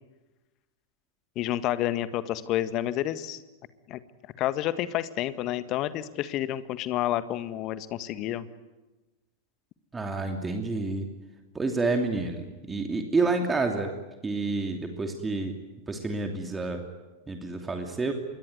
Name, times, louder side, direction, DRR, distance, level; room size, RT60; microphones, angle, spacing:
voice 1, 1.3-3.4 3.9-4.0 4.4-8.5, left 13 dB, 40° left, 13 dB, 1.6 m, -29 dB
voice 2, 9.9-11.1 11.5-13.9 14.2-15.5 15.9-16.8 17.3-18.1, right 3 dB, 15° right, 4 dB, 2.9 m, -29 dB
27.0 x 22.5 x 9.6 m, 1.1 s
figure-of-eight pair, 90°, 0 cm